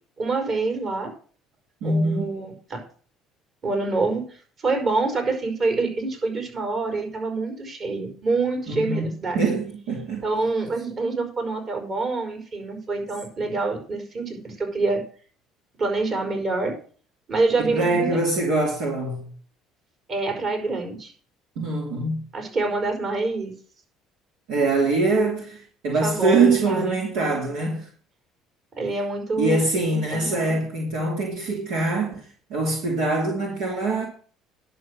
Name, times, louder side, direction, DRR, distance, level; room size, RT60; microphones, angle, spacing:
voice 1, 0.2-1.1 1.8-2.8 3.6-4.3 4.6-9.4 10.2-15.0 15.8-16.7 17.3-18.2 20.1-21.1 22.3-23.5 26.0-26.9 28.7-29.6 29.9-30.6, right 3 dB, 45° right, 5.1 m, -26 dB
voice 2, 1.8-2.3 8.7-9.1 9.3-10.2 17.6-19.3 21.6-22.2 24.5-27.9 29.4-34.1, right 3 dB, 80° right, 3.0 m, -23 dB
11.0 x 6.7 x 6.3 m
supercardioid pair, 75°, 0 cm